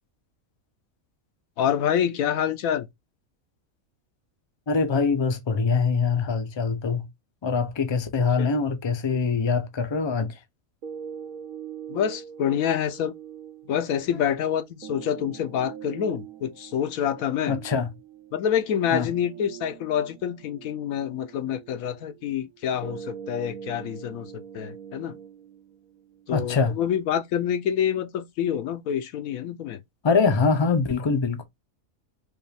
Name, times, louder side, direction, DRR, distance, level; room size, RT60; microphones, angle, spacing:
voice 1, 1.6-2.9 8.4-8.5 11.9-13.1 13.7-17.5 18.3-25.2 26.3-29.8, left 9 dB, 85° left, 1.1 m, -27 dB
voice 2, 4.7-7.1 7.4-10.4 17.5-17.9 18.9-19.1 26.3-26.8 30.0-31.4, left 5 dB, 45° left, 0.3 m, -23 dB
sound 1, 10.8-26.8, right 8 dB, 85° right, 1.2 m, -43 dB
5.0 x 2.4 x 3.3 m
omnidirectional pair, 1.4 m